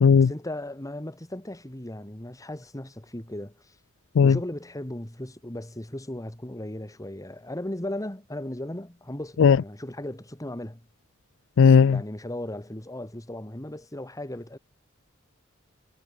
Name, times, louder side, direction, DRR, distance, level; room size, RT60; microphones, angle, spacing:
voice 1, 0.0-3.8 4.2-10.9 11.9-14.6, left 1 dB, 15° left, 1.9 m, -36 dB
voice 2, 11.6-12.0, left 6 dB, 65° left, 0.4 m, -15 dB
head